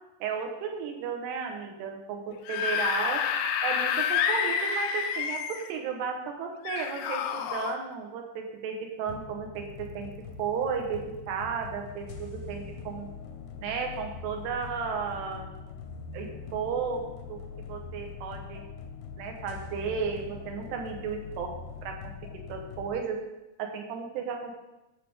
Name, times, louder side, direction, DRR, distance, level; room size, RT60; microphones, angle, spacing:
voice 1, 0.2-2.2 2.5-3.2 3.6-10.1 10.4-13.1 13.6-15.5 16.1-17.0 17.3-17.4 17.7-18.6 19.2-21.5 21.8-22.0 22.5-23.2 23.6-24.6, right 6 dB, 70° right, 3 dB, 3.0 m, -34 dB
Screaming / Screech, 2.3-5.7 6.6-7.7, left 7 dB, 90° left, 3.2 m, -28 dB
sound 1, 9.1-23.0, left 5 dB, 75° left, 2.3 m, -43 dB
15.0 x 6.6 x 3.6 m, 0.97 s
omnidirectional pair, 5.3 m